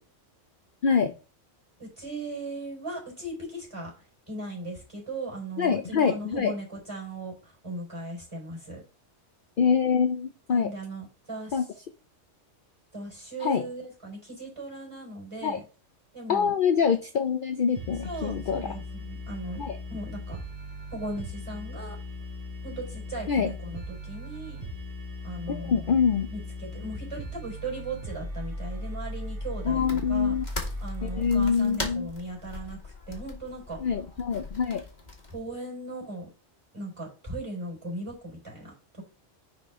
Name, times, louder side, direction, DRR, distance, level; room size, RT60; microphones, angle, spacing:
voice 1, 1.8-3.9 4.3-8.8 10.5-11.6 12.9-15.6 16.1-16.5 18.0-19.6 19.9-20.4 20.9-22.0 22.6-24.6 25.2-26.0 26.3-30.4 30.8-33.8 35.3-36.3 36.7-39.0, right 2 dB, 25° right, -2 dB, 4.5 m, -38 dB
voice 2, 5.6-6.5 9.6-10.7 11.5-11.7 13.4-13.6 15.4-15.6 16.3-18.7 19.6-19.8 23.3-23.5 25.5-26.3 29.6-30.5 31.0-32.1 33.8-34.8, left 6 dB, 50° left, 8 dB, 0.7 m, -25 dB
sound 1, 17.7-31.5, left 1 dB, 45° right, 2.5 m, -38 dB
sound 2, 29.4-35.4, left 2 dB, 35° left, 1.8 m, -40 dB
10.0 x 4.7 x 3.6 m, 0.34 s
omnidirectional pair, 1.3 m